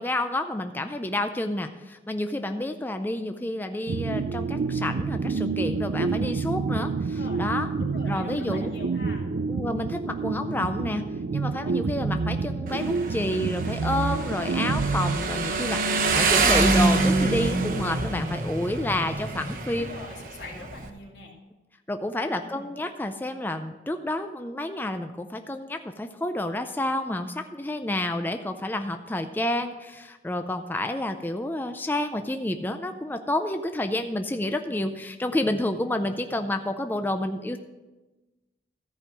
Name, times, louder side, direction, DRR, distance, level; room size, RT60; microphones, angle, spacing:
voice 1, 0.0-7.7 8.0-8.7 9.5-11.0 11.3-19.9 21.9-37.6, left 1 dB, 10° left, 7 dB, 0.4 m, -29 dB
sound 1, 3.9-15.8, right 4 dB, 80° right, 0.4 m, -28 dB
voice 2, 7.1-7.4 7.8-9.2 19.7-21.3 22.4-22.8, left 3 dB, 90° left, -2 dB, 2.5 m, -43 dB
Motorcycle, 12.7-20.9, right 3 dB, 50° right, 1.0 m, -26 dB
14.0 x 5.3 x 6.1 m, 1.1 s
head